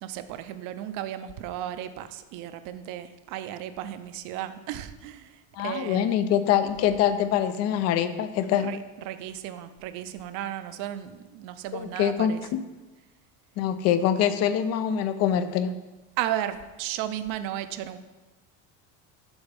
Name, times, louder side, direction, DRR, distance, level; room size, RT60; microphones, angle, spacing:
voice 1, 0.0-6.2 8.6-12.4 16.2-18.0, right 12 dB, 60° right, 11 dB, 0.6 m, -34 dB
voice 2, 5.6-8.8 11.7-12.6 13.6-15.7, left 9 dB, 45° left, 11 dB, 0.5 m, -24 dB
7.1 x 4.0 x 5.3 m, 1.1 s
cardioid pair, 145°, 37 cm